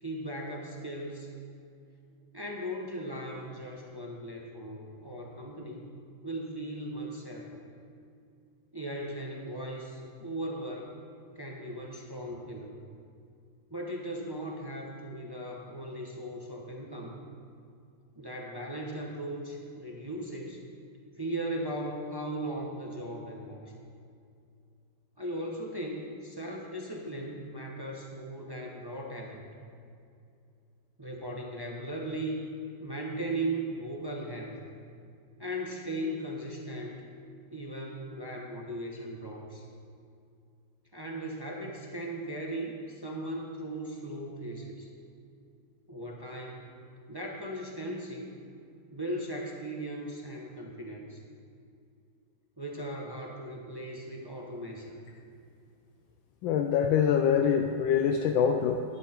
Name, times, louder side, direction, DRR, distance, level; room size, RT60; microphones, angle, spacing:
voice 1, 0.0-1.3 2.3-5.9 6.2-7.6 8.7-10.9 11.4-12.8 13.7-17.2 18.2-20.6 21.2-23.7 25.2-29.5 31.0-32.5 32.8-34.6 35.4-37.0 37.5-39.6 40.9-44.9 45.9-46.7 47.1-48.3 48.9-51.2 52.6-55.0, right 1 dB, 20° right, -1 dB, 0.6 m, -38 dB
voice 2, 56.4-58.8, left 7 dB, 75° left, 5 dB, 1.3 m, -25 dB
11.5 x 10.5 x 4.4 m, 2.4 s
omnidirectional pair, 2.2 m